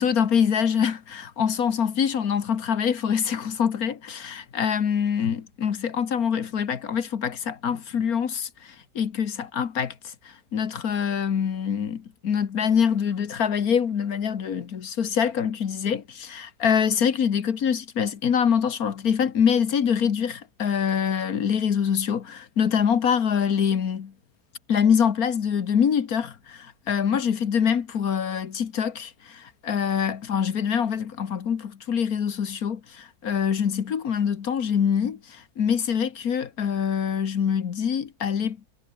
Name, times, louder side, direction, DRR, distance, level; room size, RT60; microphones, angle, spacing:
voice 1, 0.0-24.1 24.7-38.6, left 7 dB, 70° left, 1.8 m, -25 dB
omnidirectional pair, 1.7 m